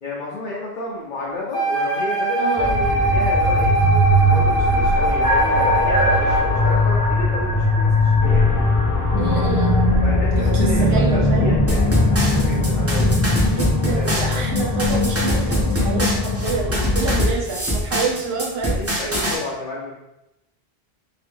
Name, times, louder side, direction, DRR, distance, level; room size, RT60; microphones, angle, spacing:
voice 1, 0.0-2.7 3.0-3.7 4.3-8.6 9.1-9.5 10.0-13.2 13.9-14.4 18.8-19.9, left 2 dB, 55° left, -4 dB, 0.7 m, -32 dB
Wind instrument woodwind instrument, 1.5-6.6, right 1 dB, 40° right, 0.9 m, -21 dB
voice 2, 2.4-2.8 9.2-9.8 10.3-11.6 13.5-19.3, right 4 dB, 75° right, -1 dB, 0.9 m, -27 dB
sound 1, 2.6-17.3, left 1 dB, 25° left, 0.4 m, -19 dB
sound 2, 11.7-19.4, equal, 15° right, 0.7 m, -24 dB
2.8 x 2.6 x 3.4 m, 0.90 s
omnidirectional pair, 1.1 m